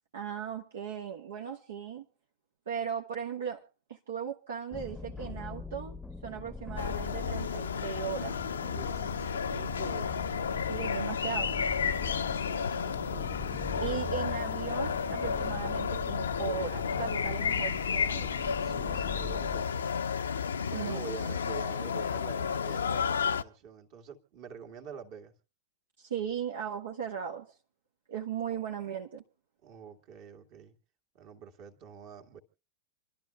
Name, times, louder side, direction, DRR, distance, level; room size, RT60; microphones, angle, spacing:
voice 1, 0.1-2.1 2.7-6.0 6.2-8.4 10.7-11.6 13.8-18.3 20.7-21.1 26.0-27.6 28.1-29.2, right 8 dB, 70° right, 1.3 m, -37 dB
sound 1, 4.7-19.6, left 4 dB, ahead, 0.9 m, -42 dB
sound 2, 6.8-23.4, left 6 dB, 80° left, 0.6 m, -32 dB
voice 2, 8.7-10.3 12.3-13.9 18.6-20.1 20.7-25.3 28.4-28.6 29.6-30.7 31.1-32.4, right 7 dB, 50° right, 2.1 m, -47 dB
28.0 x 12.5 x 2.3 m
hypercardioid pair, 95°, 0 cm